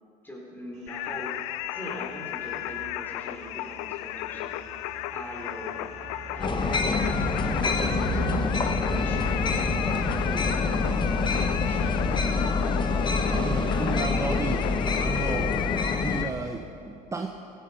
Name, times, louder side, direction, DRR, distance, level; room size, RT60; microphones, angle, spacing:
voice 1, 0.2-1.4 1.7-4.6 5.1-5.8 6.3-7.1 7.4-8.0 8.6-13.1 13.4-15.0, equal, 10° left, -1 dB, 4.0 m, -42 dB
sound 1, 0.8-15.4, right 4 dB, 40° right, 2.1 m, -40 dB
Singing, 0.9-16.3, left 15 dB, 85° left, 0.4 m, -34 dB
sound 2, 6.4-16.2, left 4 dB, 25° left, 1.2 m, -26 dB
voice 2, 13.3-15.6 16.0-17.3, right 3 dB, 15° right, 3 dB, 0.9 m, -33 dB
15.5 x 10.5 x 5.7 m, 2.7 s
supercardioid pair, 85°, 18 cm